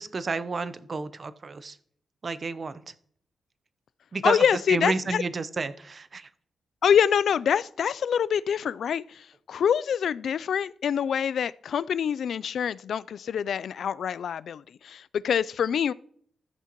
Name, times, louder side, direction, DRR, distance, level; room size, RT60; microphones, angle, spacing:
voice 1, 0.0-1.8 2.2-2.8 4.1-6.3, right 4 dB, 35° right, 0.6 m, -31 dB
voice 2, 4.2-5.2 6.8-15.9, left 8 dB, 70° left, 0.3 m, -25 dB
14.0 x 8.4 x 3.0 m
wide cardioid pair, 140°, 0 cm